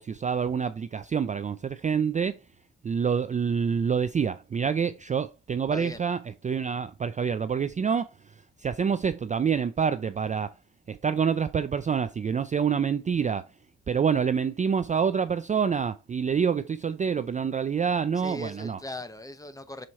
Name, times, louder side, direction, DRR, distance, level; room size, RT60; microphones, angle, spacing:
voice 1, 0.0-2.4 2.8-10.5 10.9-13.5 13.9-18.8, right 6 dB, 25° right, 0.4 m, -27 dB
voice 2, 18.2-19.9, left 1 dB, 10° left, 0.9 m, -39 dB
6.3 x 4.4 x 4.1 m
cardioid pair, 90°, 30 cm